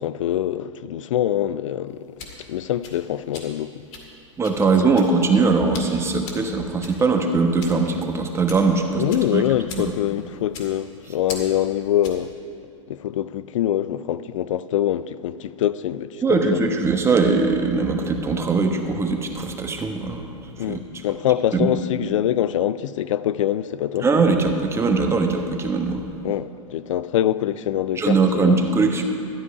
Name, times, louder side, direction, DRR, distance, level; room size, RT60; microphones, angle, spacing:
voice 1, 0.0-2.2 2.5-3.8 4.8-4.9 9.0-12.3 12.9-16.6 20.6-24.1 26.2-28.7, left 11 dB, 70° left, 0.4 m, -24 dB
sound 1, 1.9-12.3, left 4 dB, 40° left, 2.2 m, -41 dB
voice 2, 4.4-9.0 9.3-9.4 9.8-9.9 16.2-20.2 20.7-20.8 21.5-21.7 24.0-26.0 28.0-29.0, right 4 dB, 15° right, 1.2 m, -20 dB
13.0 x 9.6 x 4.8 m
hypercardioid pair, 105°, 17 cm